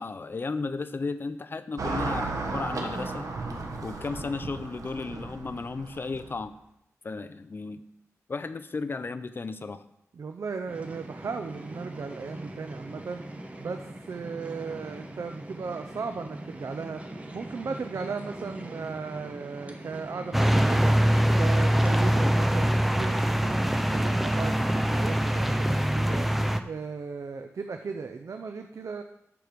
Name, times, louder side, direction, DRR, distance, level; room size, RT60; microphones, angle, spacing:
voice 1, 0.0-3.3 3.8-6.6 7.0-7.8 8.3-9.8, left 3 dB, 40° left, 11 dB, 0.6 m, -34 dB
Car passing by / Traffic noise roadway noise, 1.8-6.4, right 3 dB, 85° right, 1.3 m, -34 dB
voice 2, 10.1-29.0, right 5 dB, 65° right, 6 dB, 0.6 m, -37 dB
sound 1, 10.7-22.6, right 1 dB, 25° right, 1.1 m, -42 dB
sound 2, 20.3-26.6, equal, 5° right, 0.6 m, -23 dB
13.0 x 4.7 x 5.1 m, 0.79 s
wide cardioid pair, 120°, 6 cm